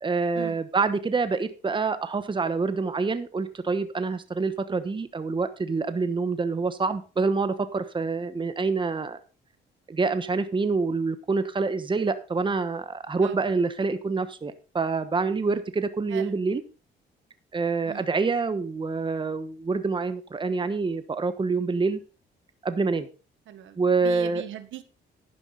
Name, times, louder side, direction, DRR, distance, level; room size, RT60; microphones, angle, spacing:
voice 1, 0.0-9.2 9.9-16.6 17.5-22.0 22.6-23.1 23.8-24.4, right 4 dB, 25° right, 11 dB, 1.1 m, -26 dB
voice 2, 16.1-16.4 17.8-18.1 23.5-24.8, right 11 dB, 75° right, 11 dB, 1.4 m, -40 dB
11.0 x 10.0 x 4.0 m, 0.34 s
cardioid pair, 90°, 20 cm